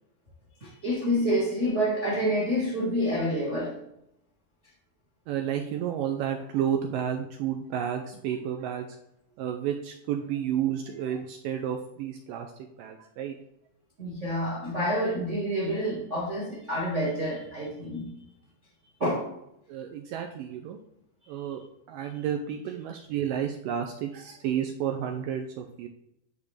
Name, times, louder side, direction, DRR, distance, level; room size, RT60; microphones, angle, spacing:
voice 1, 0.6-3.8 14.0-18.1 19.0-19.3 22.0-22.1, equal, 45° right, -4 dB, 0.9 m, -28 dB
voice 2, 5.3-8.9 9.4-12.5 12.8-13.4 19.7-20.8 21.3-21.6 21.9-25.9, right 9 dB, 90° right, 3 dB, 1.9 m, -31 dB
10.0 x 3.6 x 3.3 m, 0.79 s
omnidirectional pair, 4.4 m